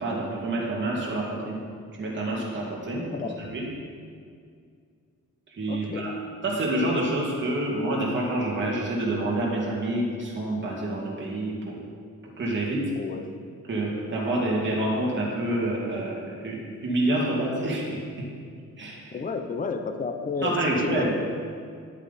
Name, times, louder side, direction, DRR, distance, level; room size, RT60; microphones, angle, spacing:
voice 1, 0.0-1.6 2.0-3.1 3.5-3.7 5.5-6.1 6.4-11.8 12.4-12.9 13.7-18.3 18.8-19.1 20.4-21.1, right 1 dB, 35° right, -4 dB, 2.3 m, -27 dB
voice 2, 5.7-6.1 13.0-13.3 19.1-21.1, left 4 dB, 25° left, 7 dB, 0.6 m, -31 dB
11.0 x 8.1 x 4.2 m, 2.2 s
wide cardioid pair, 145°, 32 cm